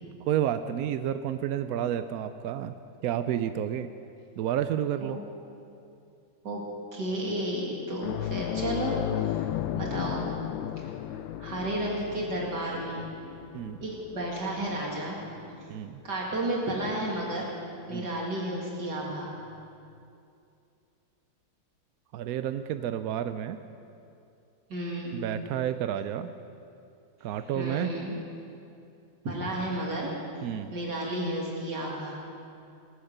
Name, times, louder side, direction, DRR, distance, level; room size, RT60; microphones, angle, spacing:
voice 1, 0.2-2.7 3.0-3.9 4.4-5.2 13.5-13.8 15.7-16.0 17.9-18.1 22.1-23.6 25.1-26.3 27.2-27.9 30.4-30.7, right 10 dB, 75° right, 10 dB, 0.8 m, -30 dB
voice 2, 6.9-10.3 10.8-13.0 13.8-15.2 16.0-17.5 17.9-19.3 24.7-25.2 27.5-28.2 29.2-30.1 30.7-32.2, right 1 dB, 60° right, -3 dB, 2.8 m, -32 dB
sound 1, 8.0-17.0 17.3-17.5 19.5-19.6, left 12 dB, 85° left, 1.3 m, -35 dB
19.0 x 9.5 x 6.7 m, 2.6 s
omnidirectional pair, 2.1 m